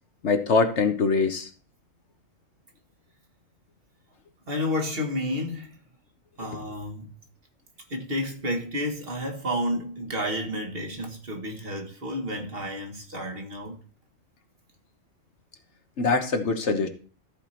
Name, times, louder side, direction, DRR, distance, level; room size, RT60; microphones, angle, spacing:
voice 1, 0.2-1.5 6.5-6.6 16.0-16.9, left 4 dB, 60° left, 1.3 m, -23 dB
voice 2, 4.5-5.8 6.4-7.1 7.9-13.8, left 1 dB, 45° right, 2.0 m, -31 dB
14.0 x 4.8 x 4.4 m
omnidirectional pair, 1.4 m